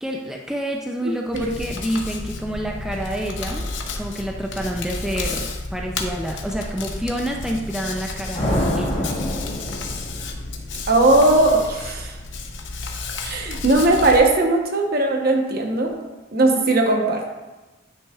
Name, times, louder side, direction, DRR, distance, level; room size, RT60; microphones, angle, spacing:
voice 1, 0.0-3.7 4.0-9.0, equal, 5° right, 0 dB, 0.4 m, -28 dB
Hands, 1.3-14.2, left 3 dB, 75° left, 0.8 m, -32 dB
sound 1, 8.3-10.6, left 1 dB, 35° left, 1.2 m, -25 dB
voice 2, 10.9-12.1 13.2-16.0 16.3-17.3, right 2 dB, 55° right, 2 dB, 1.0 m, -18 dB
9.5 x 5.5 x 2.4 m, 1.1 s
head